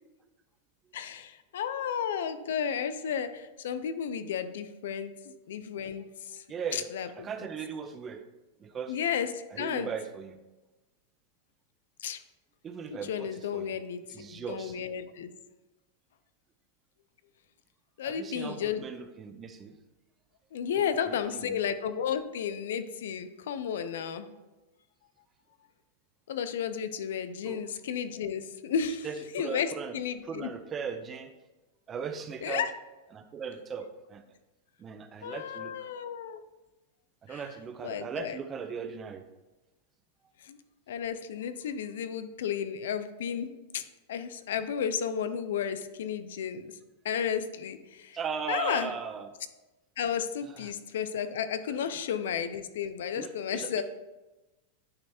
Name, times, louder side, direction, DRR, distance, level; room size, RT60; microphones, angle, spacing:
voice 1, 0.9-6.4 6.7-7.1 8.9-9.9 12.0-12.2 13.1-15.3 18.0-18.9 20.5-24.3 26.3-29.1 29.3-30.5 32.4-32.7 35.2-36.4 37.3-37.4 37.8-38.4 40.4-40.6 40.9-43.8 44.1-46.7 47.0-48.2 48.5-48.9 50.0-53.8, left 8 dB, 80° left, 11 dB, 0.5 m, -33 dB
voice 2, 6.5-6.9 7.2-8.3 8.6-9.0 9.5-10.4 12.6-13.8 14.1-14.8 18.0-19.8 20.8-21.6 27.4-27.6 29.0-30.0 30.2-31.3 31.9-32.7 33.1-34.2 34.8-35.9 37.2-39.2 48.1-49.3 50.4-50.7 51.8-51.9 53.2-53.8, right 6 dB, 20° right, 9 dB, 0.5 m, -38 dB
9.5 x 3.3 x 4.2 m, 1.1 s
supercardioid pair, 150°, 0 cm